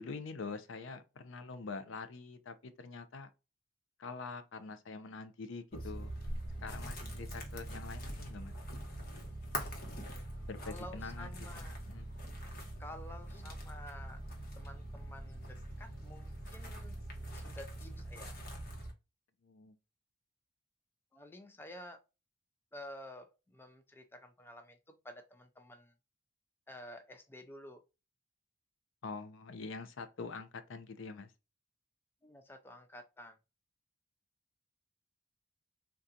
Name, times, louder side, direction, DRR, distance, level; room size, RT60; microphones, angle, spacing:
voice 1, 0.0-3.3 4.0-6.2 6.6-8.6 10.5-12.1 19.4-19.8 29.0-31.3, left 4 dB, 70° left, 0.5 m, -45 dB
sound 1, 5.7-18.9, right 1 dB, 45° left, 0.9 m, -43 dB
voice 2, 10.6-11.8 12.8-14.2 14.5-17.0 17.3-18.5 21.1-22.0 22.7-25.9 26.7-27.8 32.2-33.4, left 1 dB, 10° left, 0.3 m, -51 dB
3.7 x 2.3 x 2.7 m
head